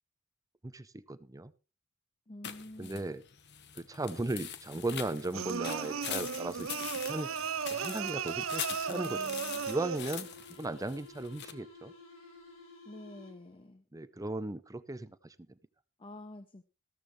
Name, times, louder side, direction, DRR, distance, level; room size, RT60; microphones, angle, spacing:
voice 1, 0.6-1.5 2.8-3.2 3.7-7.3 7.7-9.2 9.7-11.9 13.9-15.3, right 2 dB, 15° right, 14 dB, 0.6 m, -37 dB
voice 2, 2.3-3.1 8.9-9.6 12.8-13.8 16.0-16.6, left 1 dB, 25° left, 10 dB, 0.8 m, -48 dB
sound 1, 2.4-11.5, left 9 dB, 55° left, 1.2 m, -43 dB
sound 2, 5.3-10.2, right 7 dB, 85° right, 0.6 m, -36 dB
sound 3, 7.7-13.6, left 2 dB, 75° left, 5.3 m, -54 dB
14.0 x 13.5 x 3.2 m, 0.31 s
head